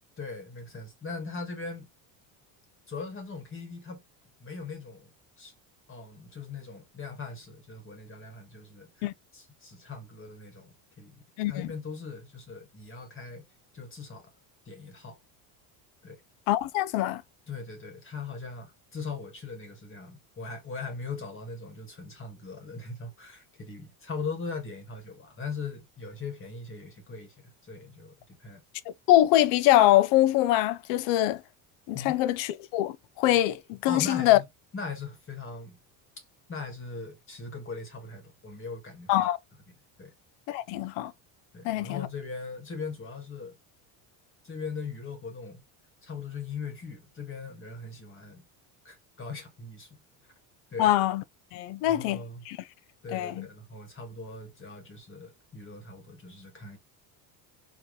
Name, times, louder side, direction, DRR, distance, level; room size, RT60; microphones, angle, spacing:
voice 1, 0.2-1.9 2.9-4.0 4.4-5.1 5.4-5.5 5.9-11.1 11.5-13.4 13.7-14.3 14.6-15.2 16.0-16.2 17.5-28.6 31.9-32.2 33.8-34.4 34.7-35.8 36.5-39.2 39.7-40.1 41.5-43.6 44.4-45.6 46.0-48.5 48.8-50.0 50.7-50.9 51.8-52.4 53.0-56.8, left 4 dB, 25° left, 1.8 m, -40 dB
voice 2, 11.4-11.7 16.5-17.2 29.1-31.4 31.9-34.4 39.1-39.4 40.5-41.1 41.6-42.1 50.8-51.2 51.5-52.6 53.1-53.5, left 14 dB, 70° left, 0.6 m, -24 dB
4.7 x 3.1 x 3.1 m
cardioid pair, 125°, 45 cm